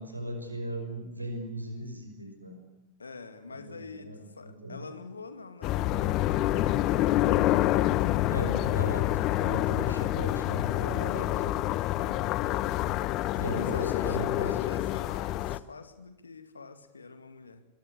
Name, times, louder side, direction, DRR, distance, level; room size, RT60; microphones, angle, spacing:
voice 1, 0.0-2.6 3.5-4.8 8.2-9.1 9.4-11.5 13.3-14.6, right 1 dB, 85° right, 6 dB, 6.0 m, -37 dB
voice 2, 3.0-6.8 13.4-17.7, left 4 dB, 75° left, 9 dB, 2.3 m, -45 dB
sound 1, 5.6-15.6, left 15 dB, 40° left, 0.9 m, -27 dB
23.5 x 23.0 x 8.4 m, 0.99 s
figure-of-eight pair, 90°, 0 cm